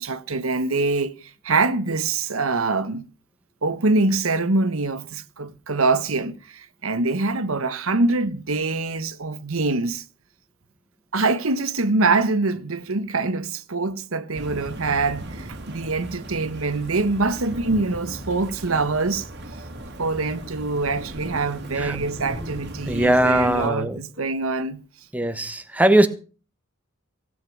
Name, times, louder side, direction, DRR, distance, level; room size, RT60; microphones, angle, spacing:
voice 1, 0.0-3.0 3.6-10.0 11.1-19.3 20.0-24.8, right 3 dB, 75° right, 1.1 m, -24 dB
sound 1, 14.3-23.7, right 1 dB, 50° right, 2.1 m, -37 dB
voice 2, 22.8-24.0 25.1-26.1, right 1 dB, 5° right, 1.2 m, -20 dB
16.5 x 9.2 x 6.1 m
head